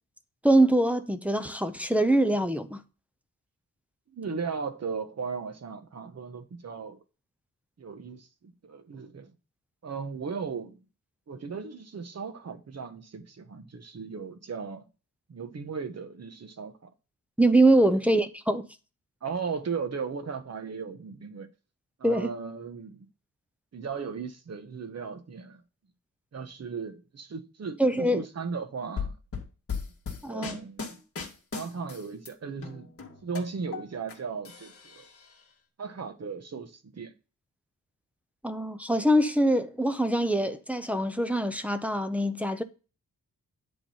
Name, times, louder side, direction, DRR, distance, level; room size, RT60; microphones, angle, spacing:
voice 1, 0.4-2.8 17.4-18.7 22.0-22.3 27.8-28.2 30.2-30.6 38.4-42.6, right 1 dB, 5° right, 0.6 m, -24 dB
voice 2, 4.1-7.0 7.8-9.3 9.8-10.8 11.3-14.9 15.3-16.9 17.9-18.0 19.2-21.5 22.0-23.1 23.7-25.6 26.3-29.2 30.3-31.0 31.5-32.9 33.2-35.1 35.8-37.1, right 5 dB, 50° right, 1.2 m, -37 dB
sound 1, 29.0-32.3 32.6-34.2 34.5-35.3, left 5 dB, 40° left, 2.2 m, -37 dB
10.5 x 3.9 x 5.6 m
wide cardioid pair, 150°, 33 cm